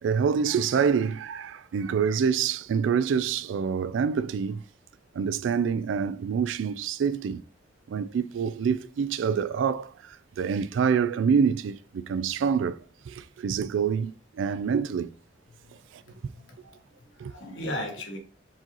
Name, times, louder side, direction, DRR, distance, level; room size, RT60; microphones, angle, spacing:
voice 1, 0.0-4.6 5.1-7.4 7.9-12.8 13.1-15.1 15.9-16.0 17.2-17.3, right 6 dB, 85° right, 0.3 m, -26 dB
voice 2, 15.5-16.6 17.0-18.2, left 1 dB, 90° left, 1.5 m, -38 dB
4.7 x 3.9 x 2.9 m
head